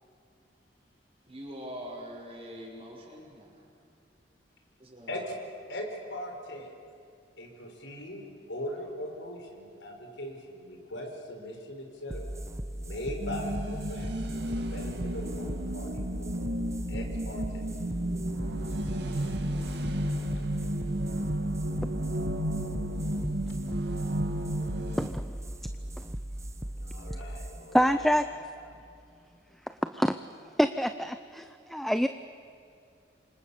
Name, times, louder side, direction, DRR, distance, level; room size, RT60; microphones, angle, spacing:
voice 1, 1.3-3.6 4.8-5.2, equal, 35° right, -1 dB, 6.4 m, -43 dB
voice 2, 5.7-6.7 7.4-12.4 12.7-14.1 14.4-16.3 16.9-17.7 26.8-28.4, left 1 dB, 90° left, 3 dB, 4.7 m, -40 dB
sound 1, 12.1-29.1, right 1 dB, 15° right, 0.9 m, -38 dB
electric piano, 13.2-25.1, right 1 dB, 65° right, 2.1 m, -33 dB
voice 3, 25.0-25.4 27.7-28.3 28.6-28.7 29.9-30.2 30.6-32.1, equal, ahead, 10 dB, 0.6 m, -26 dB
28.5 x 25.5 x 7.0 m, 2.5 s
head